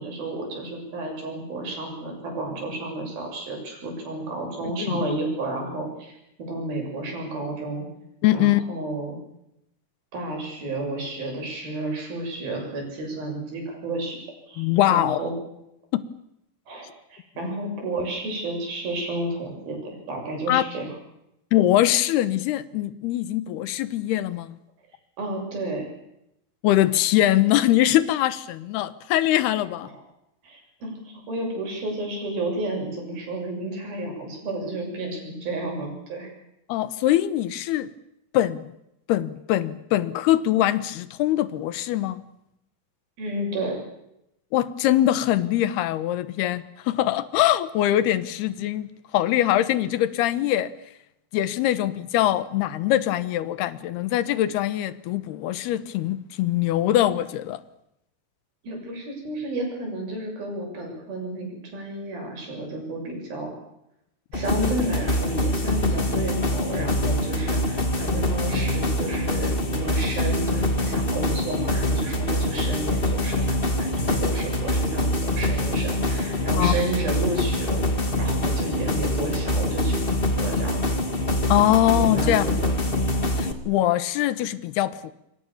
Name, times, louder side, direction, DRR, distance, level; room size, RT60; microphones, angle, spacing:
voice 1, 0.0-6.1 6.4-7.9 8.3-9.2 10.1-14.2 14.5-15.3 16.7-19.8 20.1-20.9 25.2-25.9 29.9-30.0 30.4-36.3 43.2-43.8 58.6-63.5 64.3-77.9 78.2-80.0 80.4-80.9 81.4-81.7 81.9-82.8, right 2 dB, 65° right, 1 dB, 8.8 m, -31 dB
voice 2, 8.2-8.6 14.6-15.2 15.9-16.0 20.5-20.6 21.5-24.6 26.6-29.9 36.7-37.9 38.3-38.7 39.1-42.2 44.5-50.7 51.3-57.6 76.6-76.8 81.5-82.5 83.4-85.1, left 13 dB, 80° left, 15 dB, 3.1 m, -22 dB
sound 1, 64.3-83.5, left 1 dB, 30° left, 1.0 m, -24 dB
27.0 x 24.0 x 7.2 m, 0.83 s
omnidirectional pair, 4.6 m